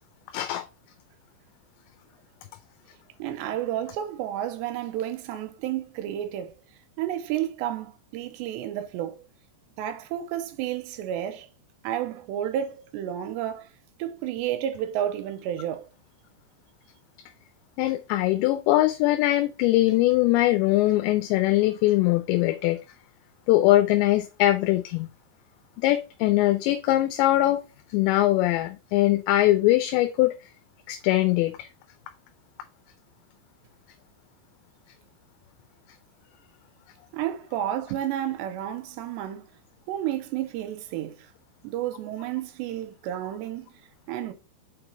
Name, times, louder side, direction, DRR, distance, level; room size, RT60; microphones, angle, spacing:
voice 1, 0.3-0.7 17.8-22.8 23.5-25.1 25.8-27.6 27.9-30.3 30.9-31.7, left 16 dB, 85° left, 2.8 m, -22 dB
voice 2, 3.2-6.5 7.0-9.3 9.8-11.5 11.8-13.7 14.0-15.9 37.1-39.5 39.9-41.3 41.6-43.7 44.1-44.3, right 11 dB, 85° right, 2.9 m, -31 dB
5.9 x 4.9 x 4.2 m
omnidirectional pair, 5.1 m